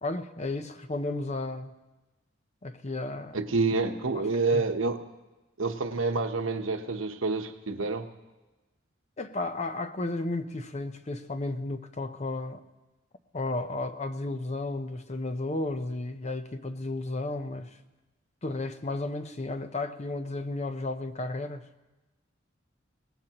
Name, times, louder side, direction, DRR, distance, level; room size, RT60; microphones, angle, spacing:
voice 1, 0.0-1.7 2.6-3.4 4.1-4.2 4.5-4.6 9.2-12.6 13.3-17.7 18.4-21.7, left 2 dB, 35° left, 9 dB, 0.7 m, -33 dB
voice 2, 3.3-5.0 5.6-8.1, right 3 dB, 80° right, 6 dB, 1.1 m, -28 dB
23.0 x 19.0 x 3.0 m, 1.1 s
head